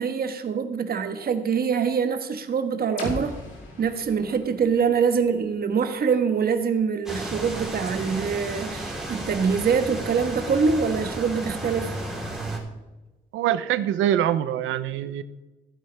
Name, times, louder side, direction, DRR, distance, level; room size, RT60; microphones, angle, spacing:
voice 1, 0.0-3.4 3.8-11.9, right 6 dB, 50° right, 8 dB, 1.3 m, -24 dB
sound 1, 3.0-6.8, left 2 dB, 75° left, 3.8 m, -39 dB
sound 2, 7.1-12.6, right 1 dB, ahead, 3.7 m, -33 dB
voice 2, 13.3-15.2, right 11 dB, 90° right, 13 dB, 0.7 m, -24 dB
15.5 x 9.4 x 3.4 m, 1.1 s
cardioid pair, 90°, 20 cm